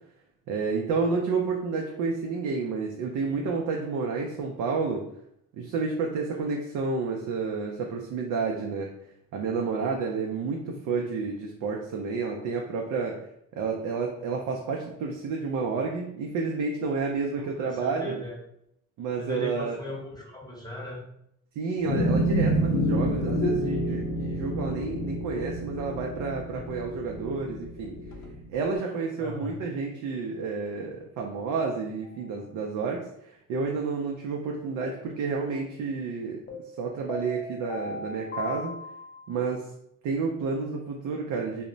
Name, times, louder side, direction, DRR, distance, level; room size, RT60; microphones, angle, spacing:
voice 1, 0.5-5.0 5.5-8.9 9.3-13.2 13.5-18.2 19.0-19.8 21.6-27.9 28.5-36.4 36.8-38.7 39.3-39.7 40.0-41.6, right 4 dB, 80° right, 0 dB, 0.5 m, -30 dB
voice 2, 17.4-18.4 19.2-21.0 26.5-26.6 29.2-29.6, left 1 dB, 15° left, -2 dB, 0.8 m, -38 dB
sound 1, 21.9-28.4, equal, 80° left, 0.6 m, -28 dB
sound 2, 32.0-32.4 36.5-39.5, left 3 dB, 30° left, 0.5 m, -39 dB
2.1 x 2.0 x 3.8 m, 0.75 s
cardioid pair, 90°, 30 cm